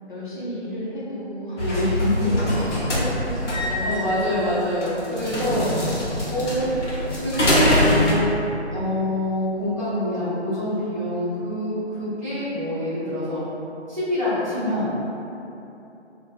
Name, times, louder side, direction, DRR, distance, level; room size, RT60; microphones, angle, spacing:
voice 1, 0.1-1.6 2.2-4.3 6.4-6.7, left 1 dB, 45° left, -8 dB, 0.6 m, -33 dB
sound 1, 1.6-8.1, left 1 dB, 85° left, 0.9 m, -23 dB
voice 2, 1.6-2.3 3.8-5.9 6.3-6.7 7.2-8.3 8.7-13.4 13.9-14.9, left 1 dB, 30° right, -19 dB, 0.7 m, -25 dB
2.6 x 2.3 x 3.0 m, 2.9 s
figure-of-eight pair, 175°, 35 cm